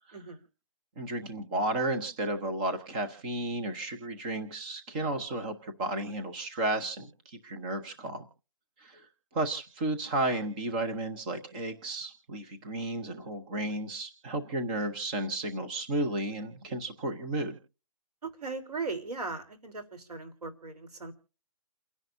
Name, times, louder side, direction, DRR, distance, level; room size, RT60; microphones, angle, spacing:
voice 1, 1.0-8.2 8.8-9.1 9.3-17.6, right 1 dB, 15° right, 5 dB, 0.7 m, -33 dB
voice 2, 18.4-21.1, right 3 dB, 90° right, 9 dB, 3.6 m, -38 dB
29.0 x 10.5 x 2.6 m, 0.36 s
hypercardioid pair, 175°, 19 cm